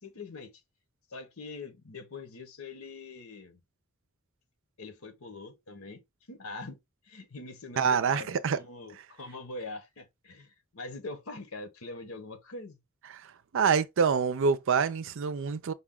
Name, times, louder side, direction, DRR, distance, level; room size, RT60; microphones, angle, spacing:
voice 1, 0.0-0.5 1.1-3.6 4.8-6.0 6.3-6.8 7.0-12.8, left 3 dB, 80° left, 1.1 m, -43 dB
voice 2, 7.8-8.6 13.5-15.7, right 6 dB, 65° right, 0.5 m, -26 dB
5.3 x 2.3 x 3.7 m
head